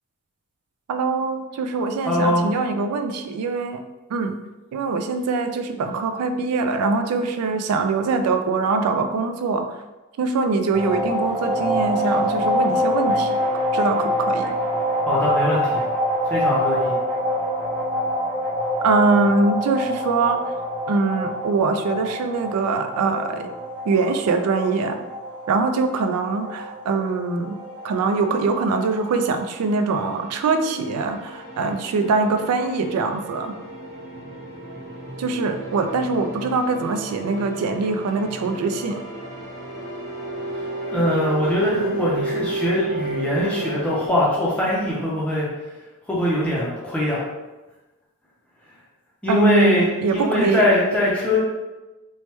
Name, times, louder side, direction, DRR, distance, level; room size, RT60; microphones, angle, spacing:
voice 1, 0.9-3.8 4.1-4.3 4.7-9.7 10.2-13.3 13.7-14.5 18.8-20.4 20.9-23.5 23.9-25.0 25.5-27.6 27.8-33.6 35.2-39.0 49.3-50.6, right 3 dB, 85° right, 9 dB, 0.3 m, -23 dB
voice 2, 2.1-2.5 15.0-15.9 16.3-16.9 40.9-45.5 46.1-47.2 49.2-51.4, left 1 dB, 5° left, -7 dB, 0.5 m, -22 dB
sound 1, 10.7-29.3, equal, 20° right, 0.8 m, -25 dB
sound 2, 27.9-44.1, right 1 dB, 40° right, 1.1 m, -32 dB
3.1 x 2.1 x 3.0 m, 1.1 s
head